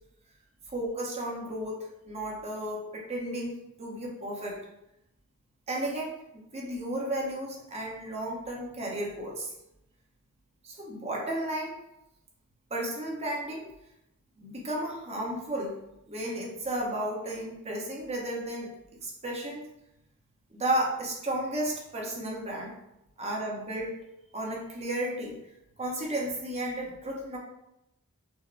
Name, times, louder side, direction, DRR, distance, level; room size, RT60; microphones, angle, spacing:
voice 1, 0.7-4.6 5.7-6.1 6.5-9.5 10.6-11.8 12.7-13.7 14.4-15.7 16.0-18.7 19.0-19.6 20.5-22.7 23.2-23.9 24.3-25.4 25.8-27.4, right 1 dB, 30° right, -2 dB, 1.0 m, -33 dB
6.2 x 2.1 x 3.3 m, 0.88 s
head